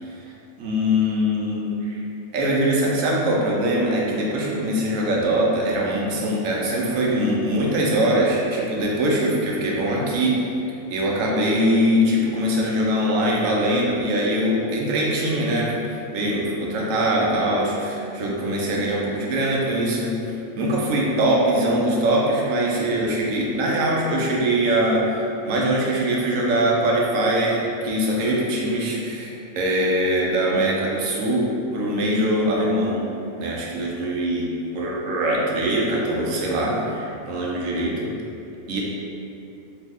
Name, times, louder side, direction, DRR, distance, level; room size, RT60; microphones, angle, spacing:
voice 1, 0.6-2.0 2.3-10.4 10.9-20.2 20.6-25.2 25.4-33.1 33.4-34.5 34.7-38.1 38.7-38.8, right 1 dB, 80° right, -3 dB, 1.0 m, -22 dB
3.1 x 2.1 x 3.5 m, 2.7 s
omnidirectional pair, 1.4 m